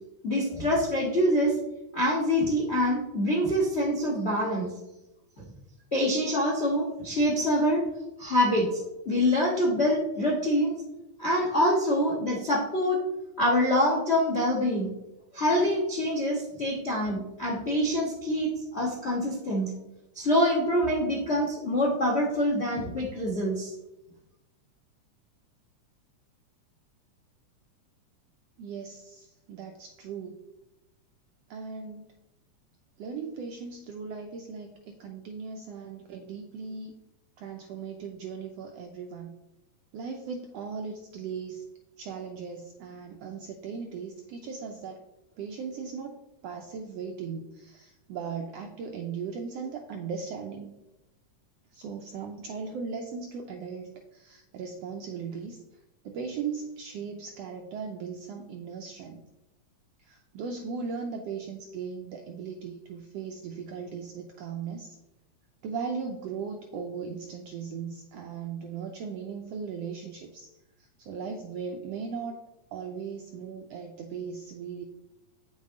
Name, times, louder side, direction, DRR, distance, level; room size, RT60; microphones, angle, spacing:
voice 1, 0.2-1.6 1.9-4.7 5.9-7.8 8.2-8.8 9.0-10.8 11.2-13.0 13.4-14.9 15.3-19.7 20.1-23.7, equal, 50° left, -1 dB, 0.7 m, -25 dB
voice 2, 28.6-30.4 31.5-32.0 33.0-36.9 37.4-39.3 39.9-41.6 42.0-45.0 45.4-46.2 46.4-50.7 51.7-55.6 56.0-59.2 60.0-65.0 65.6-70.5 70.8-72.4 72.7-74.8, right 5 dB, 80° right, 3 dB, 1.4 m, -38 dB
8.8 x 7.4 x 3.7 m, 0.96 s
omnidirectional pair, 3.5 m